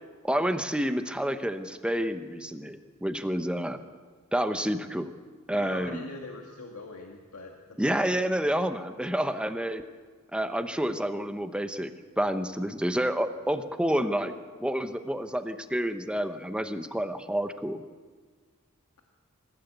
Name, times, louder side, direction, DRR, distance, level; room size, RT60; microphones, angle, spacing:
voice 1, 0.2-3.8 4.3-5.1 5.5-6.0 7.8-9.8 10.3-14.3 14.6-17.8, equal, 5° right, 8 dB, 0.9 m, -29 dB
voice 2, 5.5-8.1, left 2 dB, 85° left, 1 dB, 2.1 m, -42 dB
26.0 x 15.5 x 8.2 m, 1.5 s
head